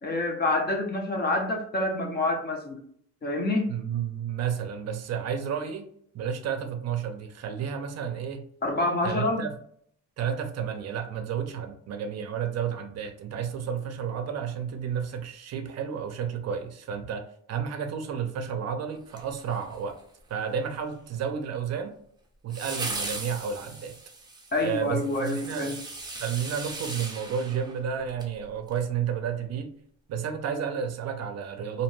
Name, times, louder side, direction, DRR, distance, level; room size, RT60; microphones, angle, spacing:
voice 1, 0.0-2.8 3.2-3.7 8.6-9.4 24.5-25.8, left 2 dB, 30° left, 3 dB, 0.6 m, -27 dB
voice 2, 3.7-5.8 6.1-8.4 9.0-9.5 10.2-20.0 20.3-21.9 22.4-24.0 24.6-25.7 26.2-29.7 30.1-31.8, right 7 dB, 55° right, 6 dB, 0.5 m, -31 dB
sound 1, 19.1-20.0 22.5-28.3 28.7-28.8, right 3 dB, 15° right, 0.6 m, -38 dB
2.7 x 2.1 x 3.0 m, 0.64 s
cardioid pair, 120°, 31 cm